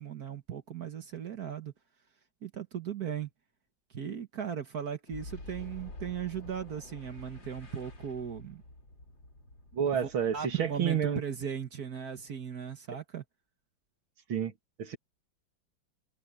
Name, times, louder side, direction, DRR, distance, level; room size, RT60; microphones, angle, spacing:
voice 1, 0.0-1.7 2.4-3.3 3.9-8.6 9.9-13.2, right 8 dB, 55° right, 1.6 m, -37 dB
Boom, 5.1-11.6, left 2 dB, 65° left, 5.6 m, -48 dB
voice 2, 9.7-11.2 14.3-14.5 14.8-15.0, right 8 dB, 85° right, 2.9 m, -29 dB
omnidirectional pair, 2.2 m